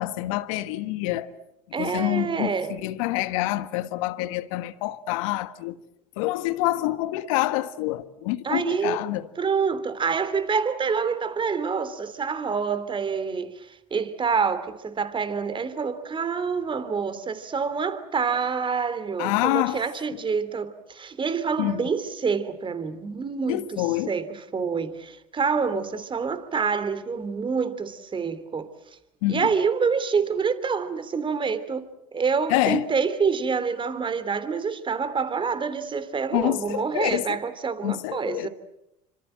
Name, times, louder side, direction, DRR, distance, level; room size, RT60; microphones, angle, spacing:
voice 1, 0.0-1.3 1.7-5.8 6.2-9.3 19.2-19.8 20.1-20.2 21.6-21.8 23.5-24.1 29.2-29.5 32.5-32.8 36.3-37.4 37.8-38.5, left 17 dB, 75° left, 1.5 m, -27 dB
voice 2, 1.7-2.7 8.4-9.0 9.4-24.3 24.5-28.7 29.3-31.8 32.1-38.5, right 5 dB, 30° right, 3.0 m, -27 dB
27.0 x 25.5 x 7.7 m
hypercardioid pair, 80°, 17 cm